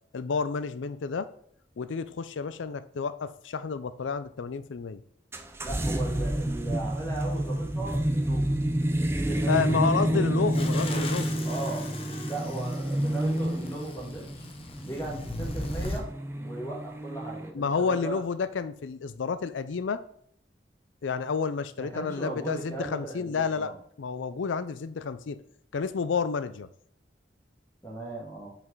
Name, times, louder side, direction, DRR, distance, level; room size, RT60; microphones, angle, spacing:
voice 1, 0.1-1.3 1.8-5.0 9.5-11.3 17.5-20.0 21.0-23.7 24.0-25.4 25.7-26.7, left 5 dB, 85° left, 14 dB, 0.5 m, -30 dB
sound 1, 5.3-17.5, right 1 dB, 15° right, 0.5 m, -29 dB
voice 2, 5.6-8.6 9.0-10.3 10.7-11.9 12.3-14.4 14.8-18.2 21.8-23.8 27.8-28.5, right 2 dB, 15° left, -2 dB, 2.0 m, -37 dB
sound 2, 10.5-16.0, left 2 dB, 30° left, 0.8 m, -38 dB
5.9 x 5.2 x 4.7 m, 0.66 s
head